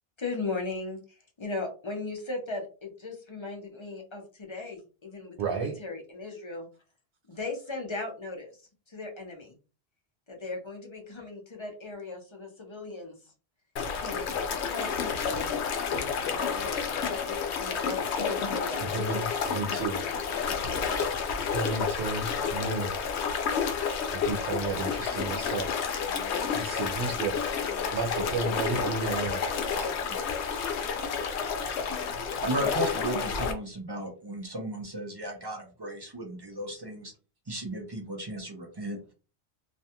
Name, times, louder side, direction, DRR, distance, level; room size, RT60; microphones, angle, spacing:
voice 1, 0.2-1.0 1.4-6.7 7.3-8.5 8.9-9.5 10.3-13.2 14.0-14.3 14.6-15.7 16.3-19.3 20.5-21.0, left 3 dB, 35° left, 2 dB, 0.5 m, -37 dB
voice 2, 5.4-5.8 18.8-20.0 21.5-22.9 24.1-25.8 26.5-27.4 27.9-29.4, right 4 dB, 90° right, 2 dB, 0.9 m, -32 dB
sound 1, 13.8-33.5, left 6 dB, 80° left, 0.8 m, -30 dB
voice 3, 32.4-37.1 37.5-39.1, right 1 dB, 35° right, 2 dB, 0.4 m, -35 dB
2.5 x 2.2 x 2.7 m, 0.35 s
omnidirectional pair, 1.1 m